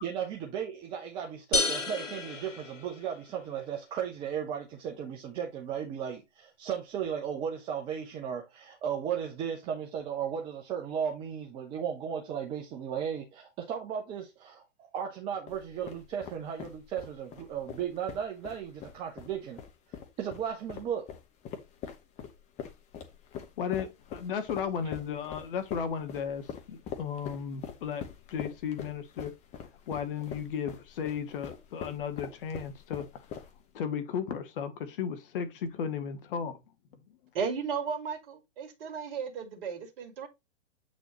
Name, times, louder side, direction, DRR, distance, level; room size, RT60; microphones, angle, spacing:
voice 1, 0.0-19.6 20.2-21.1, right 8 dB, 15° right, 0.5 m, -35 dB
sound 1, 1.5-3.4, left 3 dB, 85° left, 1.4 m, -31 dB
sound 2, 15.5-33.8, left 8 dB, 20° left, 1.0 m, -43 dB
voice 2, 23.6-28.0 28.3-29.3 29.9-33.1 33.4-33.5 33.7-36.6, left 7 dB, 45° left, 1.1 m, -35 dB
voice 3, 37.3-40.3, right 6 dB, 50° right, 2.1 m, -35 dB
8.1 x 4.1 x 3.0 m
figure-of-eight pair, 125°, 37 cm